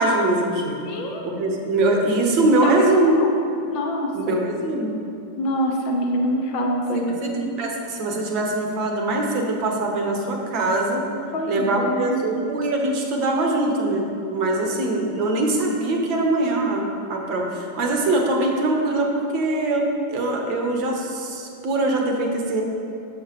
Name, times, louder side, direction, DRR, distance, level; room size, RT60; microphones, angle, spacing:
voice 1, 0.0-0.8 1.2-3.3 4.1-5.0 6.9-11.0 11.5-22.6, right 2 dB, 40° right, 1 dB, 0.9 m, -22 dB
voice 2, 0.8-1.3 2.6-3.3 3.6-4.3 5.4-7.2 11.3-12.2, equal, 40° left, 1 dB, 0.9 m, -25 dB
6.6 x 5.7 x 3.0 m, 2.7 s
figure-of-eight pair, 90°, 0 cm